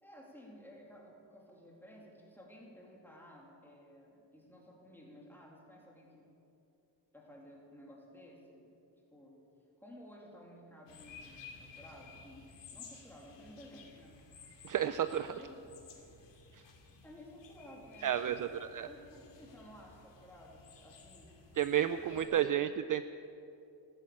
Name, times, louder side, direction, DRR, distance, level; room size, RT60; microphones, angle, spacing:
voice 1, 0.0-6.3 7.1-8.7 9.1-9.4 9.8-14.2 15.3-15.7 16.0-16.4 17.0-18.6 18.8-21.4 21.9-22.5, equal, 5° left, -2 dB, 2.8 m, -55 dB
sound 1, 10.9-22.2, left 4 dB, 85° left, 2.6 m, -55 dB
voice 2, 14.6-15.3 18.0-18.9 21.6-23.0, right 10 dB, 50° right, 11 dB, 0.4 m, -31 dB
15.0 x 11.5 x 8.5 m, 2.7 s
wide cardioid pair, 160°, 42 cm